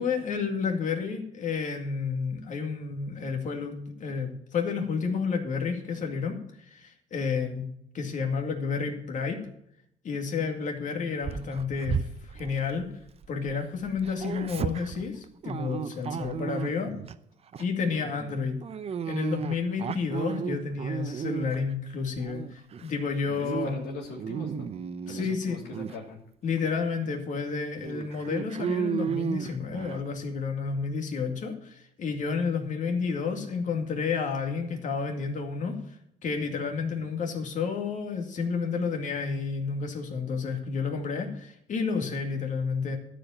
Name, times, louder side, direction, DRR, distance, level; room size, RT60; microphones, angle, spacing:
voice 1, 0.0-7.6 7.9-9.4 10.0-12.9 13.3-16.9 17.6-18.6 19.1-23.7 25.1-25.6 26.4-36.0 36.2-43.0, left 5 dB, 50° left, 3 dB, 2.2 m, -30 dB
Dog, 11.2-13.5 13.8-17.2 17.5-17.8 18.6-21.7 22.2-22.9 23.3-23.7 24.0-25.3 25.7-26.0 26.6-26.7 27.0-27.1 27.8-30.1, right 7 dB, 35° right, 0.6 m, -34 dB
voice 2, 23.4-24.7 25.1-26.2, left 2 dB, 75° left, -1 dB, 2.9 m, -40 dB
12.5 x 5.1 x 8.8 m, 0.74 s
cardioid pair, 110°, 17 cm